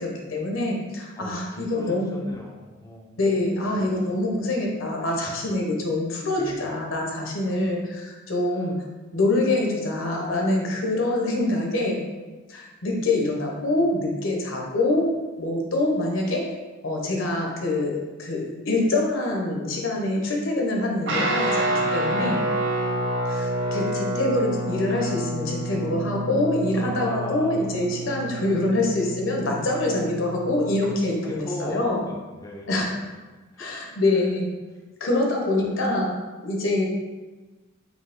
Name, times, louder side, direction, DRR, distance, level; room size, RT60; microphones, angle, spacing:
voice 1, 0.0-2.1 3.2-7.8 8.3-8.7 9.1-12.0 12.5-15.1 15.4-16.5 16.8-22.4 23.3-32.1 32.7-32.9 33.6-34.5 35.0-36.1 36.4-36.9, left 2 dB, 70° left, 0 dB, 1.0 m, -25 dB
voice 2, 1.2-3.5 3.8-4.0 6.4-6.8 7.6-7.7 8.5-8.7 26.7-27.8 28.1-28.4 31.2-33.0 33.5-33.7 34.1-34.3 35.6-35.7, left 1 dB, 15° left, -3 dB, 0.5 m, -39 dB
Guitar, 21.1-30.9, right 1 dB, 65° right, 0.7 m, -28 dB
5.2 x 2.8 x 3.6 m, 1.3 s
head